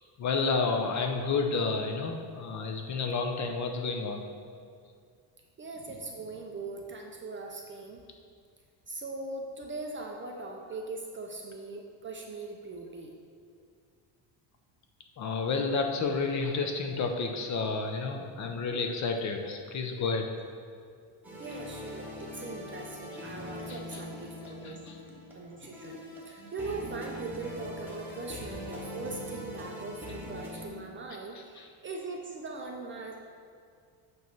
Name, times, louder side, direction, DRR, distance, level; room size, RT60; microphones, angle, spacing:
voice 1, 0.2-4.2 15.2-20.3 24.6-24.7, left 4 dB, 35° left, 4 dB, 0.6 m, -30 dB
voice 2, 5.6-8.0 8.9-13.1 21.4-24.8 25.3-26.0 26.3-33.2, right 3 dB, 25° right, 1 dB, 0.4 m, -40 dB
sound 1, 21.2-30.7, left 1 dB, 5° right, 1.1 m, -42 dB
8.0 x 3.1 x 5.9 m, 2.2 s
cardioid pair, 145°, 48 cm